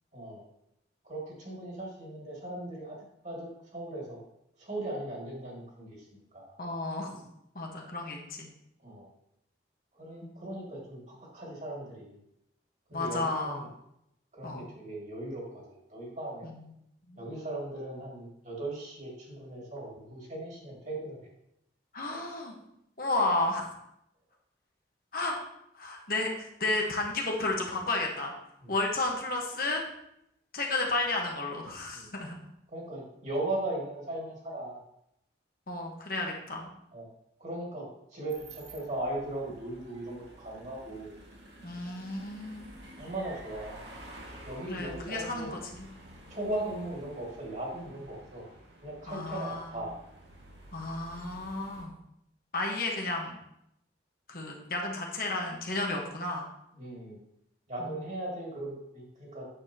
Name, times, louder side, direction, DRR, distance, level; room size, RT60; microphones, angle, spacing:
voice 1, 0.1-0.5 1.0-3.0 3.2-4.2 4.6-6.1 6.3-6.6 8.8-9.1 9.9-12.2 12.9-13.7 14.3-16.5 17.1-21.2 22.1-22.3 28.6-28.7 31.9-32.1 32.7-34.8 36.9-37.1 37.4-41.1 43.0-43.8 44.4-45.6 46.3-48.5 48.8-50.0 56.7-57.2 57.7-59.5, right 1 dB, 40° right, -3 dB, 2.3 m, -38 dB
voice 2, 6.6-7.2 7.5-8.5 10.2-10.4 12.9-13.6 14.4-14.6 16.4-16.6 17.1-17.2 21.9-22.5 23.0-23.7 25.1-25.3 25.7-28.3 28.7-29.8 30.5-32.4 35.7-36.7 41.6-42.6 44.7-45.9 49.1-49.7 50.7-51.9 52.5-53.4 54.3-56.4, left 2 dB, 50° left, 0 dB, 1.3 m, -32 dB
sound 1, 38.3-51.8, right 1 dB, 75° right, 1.9 m, -51 dB
8.9 x 7.1 x 2.9 m, 0.78 s
head